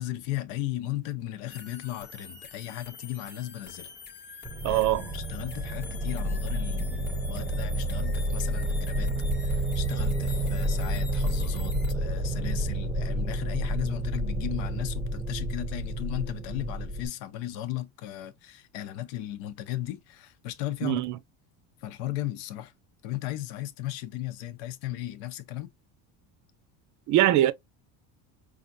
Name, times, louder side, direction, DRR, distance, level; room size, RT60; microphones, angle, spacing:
voice 1, 0.0-3.9 4.7-9.1 9.4-21.0 21.8-22.7 23.0-25.7, left 14 dB, 75° left, 0.9 m, -36 dB
sound 1, 1.5-11.9, left 4 dB, 25° left, 0.8 m, -46 dB
sound 2, 4.4-17.1, right 1 dB, 10° right, 0.7 m, -30 dB
voice 2, 4.6-5.0 20.8-21.2 27.1-27.5, right 14 dB, 45° right, 0.5 m, -22 dB
5.0 x 2.5 x 2.6 m
cardioid pair, 125°, 43 cm